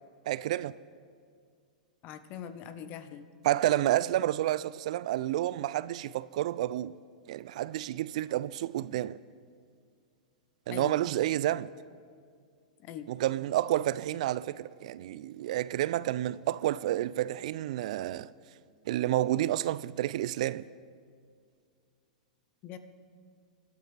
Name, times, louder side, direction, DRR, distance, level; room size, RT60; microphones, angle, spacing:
voice 1, 0.3-0.8 3.4-6.9 7.3-9.2 10.7-11.7 13.1-18.3 18.9-20.7, right 14 dB, 60° right, 0.4 m, -30 dB
voice 2, 2.0-3.3 10.7-11.0 12.8-13.1 22.6-22.8, left 9 dB, 40° left, 1.1 m, -42 dB
26.0 x 12.5 x 3.4 m
hypercardioid pair, 105°, 4 cm